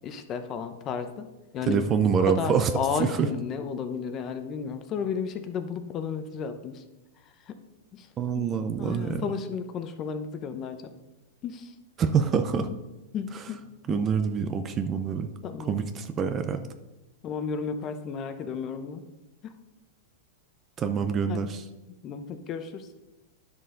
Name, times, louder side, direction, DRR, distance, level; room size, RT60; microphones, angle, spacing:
voice 1, 0.0-1.3 1.5-1.8 2.2-6.8 7.4-7.6 7.9-8.1 8.3-8.5 8.8-10.9 11.4-11.7 13.1-13.6 13.9-14.0 15.4-15.8 17.2-19.0 19.4-19.5 21.3-21.5 22.0-22.9, left 6 dB, 25° left, 8 dB, 0.8 m, -33 dB
voice 2, 1.7-2.7 3.0-3.3 8.2-9.2 12.0-12.7 13.9-15.3 15.7-16.7 20.8-21.6, right 6 dB, 20° right, 9 dB, 0.5 m, -26 dB
10.5 x 6.9 x 3.8 m, 1.0 s
supercardioid pair, 155°, 0 cm